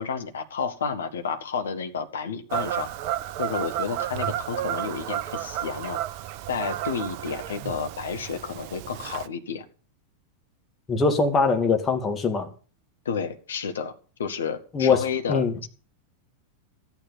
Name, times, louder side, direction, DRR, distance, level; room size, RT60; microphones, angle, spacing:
voice 1, 0.0-2.9 3.4-6.0 6.5-9.6 13.0-13.9 14.2-15.7, left 6 dB, 65° left, 1.4 m, -31 dB
Fowl / Bird vocalization bird call bird song, 2.5-9.3, right 12 dB, 45° right, 0.7 m, -32 dB
voice 2, 10.9-12.5 14.7-15.0 15.3-15.5, left 4 dB, 20° left, 2.1 m, -22 dB
13.5 x 9.5 x 5.5 m
figure-of-eight pair, 90°, 0 cm